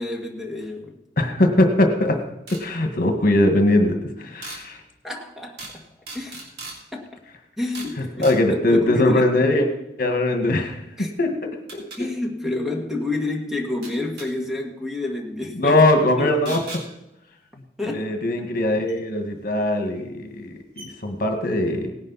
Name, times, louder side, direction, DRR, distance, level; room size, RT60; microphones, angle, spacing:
voice 1, 0.0-1.0 5.0-5.8 6.1-6.4 6.9-7.1 7.6-9.3 11.0-11.1 12.0-15.8 16.2-16.6 17.8-18.1 18.4-18.5, left 2 dB, ahead, 1 dB, 1.6 m, -29 dB
voice 2, 1.2-2.2 2.6-4.8 8.0-9.7 10.0-11.3 11.7-12.1 15.6-16.6 17.8-21.9, left 1 dB, 55° left, 4 dB, 1.8 m, -21 dB
sound 1, 2.5-2.6 4.4-4.6 5.6-5.8 6.1-6.8 7.7-7.9 8.2-8.4 10.6-10.7 11.7-12.0 13.8-14.3 16.5-16.8 18.9-19.0 19.9-20.0 20.4-20.5 20.8-20.9, right 3 dB, 65° right, 3.2 m, -37 dB
18.0 x 10.5 x 4.2 m, 0.88 s
head